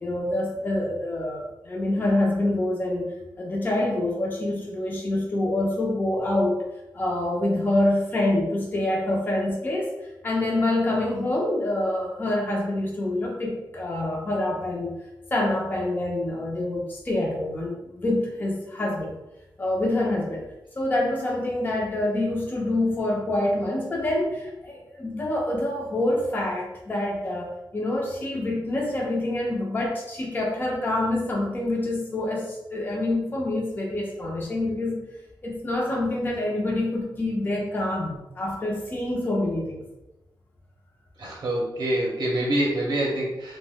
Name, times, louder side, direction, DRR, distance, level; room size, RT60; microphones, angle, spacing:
voice 1, 0.0-6.6 6.9-9.9 10.2-15.0 15.3-19.2 19.6-20.4 20.8-35.0 35.4-39.8, left 1 dB, 25° left, -2 dB, 0.5 m, -26 dB
voice 2, 41.2-43.6, right 1 dB, 55° right, -3 dB, 0.6 m, -26 dB
2.8 x 2.1 x 3.4 m, 0.95 s
wide cardioid pair, 150°, 8 cm